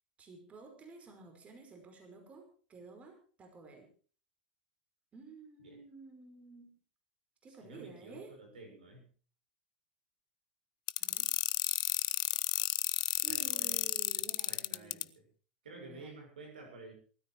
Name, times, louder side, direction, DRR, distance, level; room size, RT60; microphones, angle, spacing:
voice 1, 0.2-3.9 5.1-6.8 7.4-8.3 11.0-11.3 13.1-15.1 15.7-16.2, right 4 dB, 25° right, 4 dB, 5.2 m, -52 dB
voice 2, 7.5-9.1 13.3-13.9 14.1-15.3 15.6-16.9, right 3 dB, 75° right, 3 dB, 7.0 m, -52 dB
sound 1, 10.9-15.0, left 19 dB, 60° left, 0.7 m, -32 dB
19.5 x 13.5 x 4.8 m, 0.40 s
hypercardioid pair, 90°, 5 cm